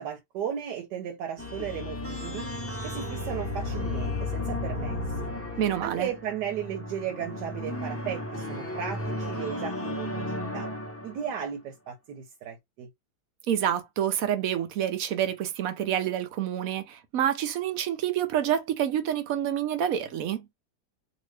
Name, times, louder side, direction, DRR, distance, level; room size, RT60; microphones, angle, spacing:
voice 1, 0.0-5.3 5.8-10.7 11.0-12.9, right 8 dB, 90° right, 1.3 m, -35 dB
sound 1, 1.4-11.4, left 2 dB, 20° left, 0.3 m, -34 dB
voice 2, 5.6-6.1 13.5-20.4, right 10 dB, 70° right, 0.9 m, -28 dB
2.8 x 2.6 x 3.2 m
omnidirectional pair, 1.7 m